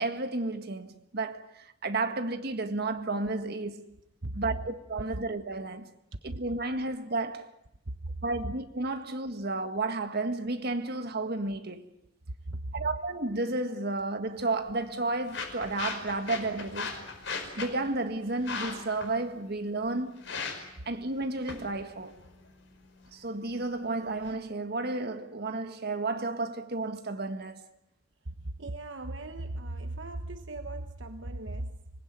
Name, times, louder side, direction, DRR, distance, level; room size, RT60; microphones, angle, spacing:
voice 1, 0.0-4.0 4.4-5.9 6.2-7.4 8.2-11.9 12.7-17.0 17.6-20.2 20.9-22.2 23.1-27.6, right 2 dB, 55° right, 1.7 m, -32 dB
voice 2, 4.2-4.5 6.3-6.4 7.9-8.5 9.4-9.6 12.3-12.9 28.2-31.9, right 1 dB, 70° right, 1.2 m, -38 dB
sound 1, 14.3-24.3, left 4 dB, 70° left, 5.3 m, -41 dB
25.5 x 20.5 x 9.0 m
head